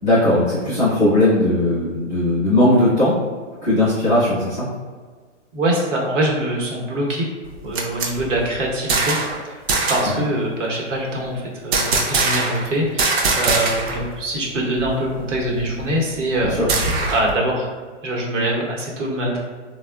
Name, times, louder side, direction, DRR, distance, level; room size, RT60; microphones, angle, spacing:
voice 1, 0.0-3.1 3.6-4.7 16.4-16.7, left 1 dB, 10° left, -13 dB, 0.4 m, -18 dB
voice 2, 5.5-7.2 7.6-9.2 9.9-16.8 17.1-17.7 18.0-19.4, right 1 dB, 80° right, -2 dB, 1.0 m, -23 dB
sound 1, 7.4-9.4 9.7-10.2 11.7-12.7 13.0-14.1 14.3-14.4 14.8-17.4, right 3 dB, 55° right, 0.5 m, -22 dB
3.5 x 2.2 x 2.3 m, 1.5 s
hypercardioid pair, 150°, 37 cm